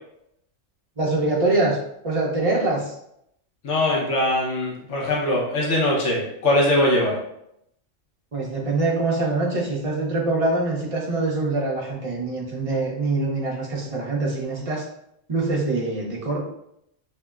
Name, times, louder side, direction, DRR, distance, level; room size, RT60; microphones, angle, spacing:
voice 1, 1.0-1.8 2.0-2.9 8.3-14.8 15.3-16.4, right 2 dB, 35° right, -3 dB, 0.7 m, -24 dB
voice 2, 3.6-7.2, left 1 dB, 70° left, -3 dB, 1.1 m, -21 dB
5.6 x 2.1 x 2.3 m, 0.77 s
omnidirectional pair, 1.3 m